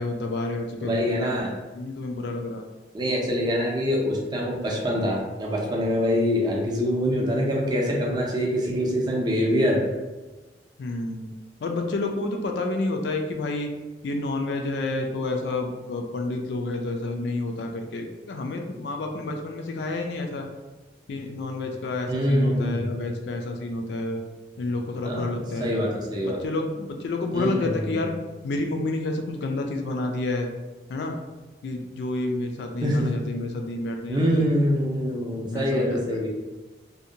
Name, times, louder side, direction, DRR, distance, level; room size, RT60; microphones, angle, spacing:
voice 1, 0.0-1.5 1.7-2.6 10.8-11.3 11.6-13.7 14.0-20.5 21.1-24.2 24.6-25.7 26.2-28.1 28.4-30.5 30.9-31.2 31.6-34.4 35.4-36.0, left 2 dB, 65° left, 3 dB, 0.3 m, -29 dB
voice 2, 0.8-1.5 2.9-9.8 22.1-22.9 25.0-26.4 27.3-28.1 32.8-33.0 34.1-36.3, equal, 25° right, -3 dB, 0.5 m, -25 dB
2.7 x 2.1 x 2.6 m, 1.2 s
head